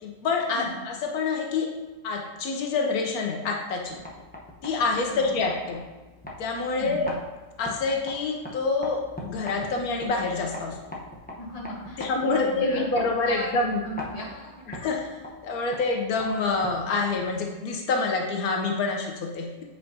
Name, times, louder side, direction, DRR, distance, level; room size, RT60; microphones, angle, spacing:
voice 1, 0.0-1.7 2.0-4.0 4.6-5.8 6.4-7.1 7.6-10.8 12.0-13.8 14.7-15.0 15.4-19.6, left 3 dB, 85° left, 2 dB, 1.2 m, -27 dB
sound 1, 3.8-17.5, left 1 dB, 10° left, 0.6 m, -42 dB
voice 2, 4.9-5.4 6.6-7.1 11.4-12.9 13.3-13.5 13.8-14.6, right 1 dB, 25° left, -4 dB, 1.4 m, -37 dB
8.1 x 4.5 x 2.7 m, 1.2 s
omnidirectional pair, 1.5 m